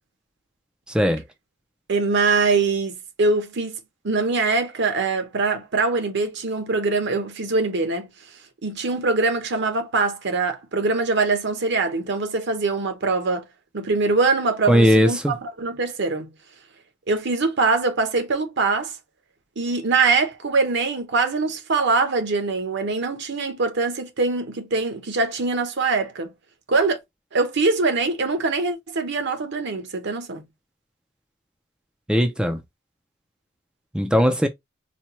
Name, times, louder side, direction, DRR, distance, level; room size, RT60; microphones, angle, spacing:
voice 1, 1.9-3.8 4.0-8.1 8.6-13.4 13.7-16.3 17.1-19.0 19.6-26.3 26.7-27.0 27.3-30.4, right 3 dB, 60° right, 0.9 m, -23 dB
voice 2, 14.7-15.3 32.1-32.6 33.9-34.5, equal, 5° right, 0.4 m, -18 dB
4.2 x 2.2 x 2.9 m
head